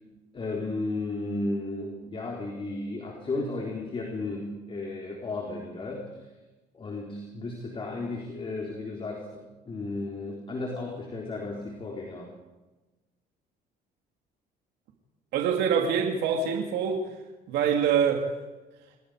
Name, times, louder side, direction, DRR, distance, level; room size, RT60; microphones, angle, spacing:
voice 1, 0.3-6.2 6.7-12.3, left 2 dB, 30° left, 0 dB, 4.0 m, -34 dB
voice 2, 15.3-17.1 17.5-18.3, right 7 dB, 85° right, 2 dB, 2.9 m, -25 dB
27.5 x 21.0 x 5.1 m, 1.1 s
cardioid pair, 110°, 17 cm